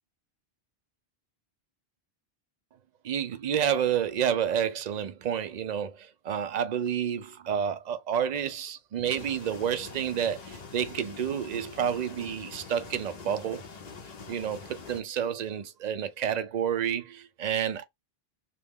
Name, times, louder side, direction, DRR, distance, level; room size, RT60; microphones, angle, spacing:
voice 1, 3.0-13.6 14.3-17.8, right 8 dB, 55° right, 0.5 m, -29 dB
sound 1, 9.1-15.0, left 4 dB, 45° left, 0.6 m, -45 dB
3.1 x 2.3 x 3.5 m
omnidirectional pair, 1.1 m